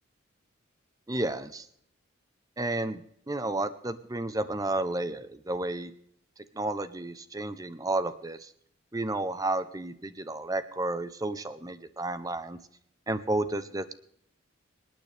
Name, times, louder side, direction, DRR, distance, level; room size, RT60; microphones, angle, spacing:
voice 1, 1.1-1.7 2.6-5.9 6.5-8.5 8.9-12.6 13.1-13.9, right 2 dB, 15° right, 13 dB, 0.6 m, -32 dB
26.5 x 9.1 x 3.4 m, 0.69 s
head